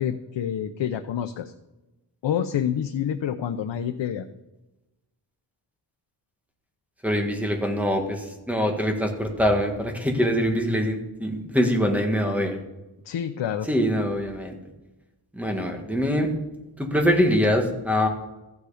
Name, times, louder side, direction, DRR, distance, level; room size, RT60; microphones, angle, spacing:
voice 1, 0.0-1.5 2.2-4.3 13.0-13.7, left 9 dB, 90° left, 7 dB, 0.8 m, -27 dB
voice 2, 7.0-12.6 13.7-14.5 15.3-16.3 16.8-18.1, equal, 5° right, 3 dB, 1.8 m, -23 dB
14.5 x 9.5 x 5.0 m, 1.0 s
wide cardioid pair, 160°, 42 cm